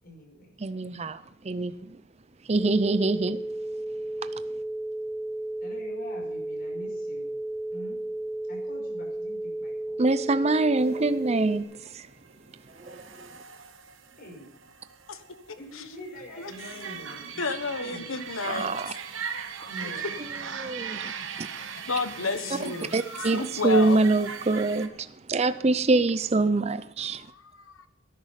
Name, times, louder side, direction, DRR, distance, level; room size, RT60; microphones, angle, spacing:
voice 1, 0.0-0.6 5.6-7.4 7.7-8.0 8.5-10.0 14.2-14.5 15.6-17.4 17.8-18.2 19.6-20.4 22.1-23.0, equal, 45° left, 5.7 m, -44 dB
voice 2, 0.6-2.0 2.5-3.4 10.0-11.6 11.9-12.0 12.8-13.3 18.4-18.9 20.6-21.1 21.4-21.5 22.9-27.3, right 3 dB, 30° right, 0.5 m, -25 dB
sound 1, 2.6-11.6, right 1 dB, 10° left, 1.1 m, -33 dB
sound 2, 10.8-24.9, right 6 dB, 65° right, 1.3 m, -40 dB
voice 3, 17.4-19.0 19.8-19.9 20.5-20.7 21.8-24.0 27.2-27.9, left 4 dB, 75° left, 1.3 m, -32 dB
18.0 x 10.5 x 5.8 m
head